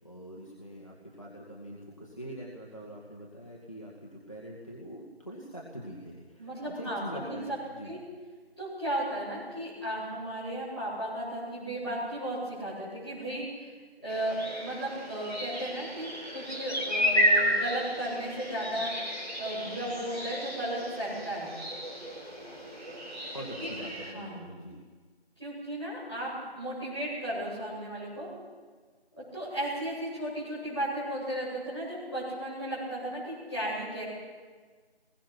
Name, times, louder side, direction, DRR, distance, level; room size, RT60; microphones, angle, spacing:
voice 1, 0.0-7.9 23.3-24.8, equal, 30° left, -4 dB, 2.2 m, -43 dB
voice 2, 6.4-7.6 7.8-8.0 8.6-13.7 14.0-18.9 19.4-21.5 23.3-23.7 24.0-24.5 25.4-26.3 26.5-28.3 29.3-34.0, right 1 dB, 5° left, -23 dB, 7.5 m, -35 dB
sound 1, 14.1-24.1, equal, 45° right, 5.2 m, -32 dB
25.0 x 21.5 x 6.0 m, 1.5 s
figure-of-eight pair, 175°, 32 cm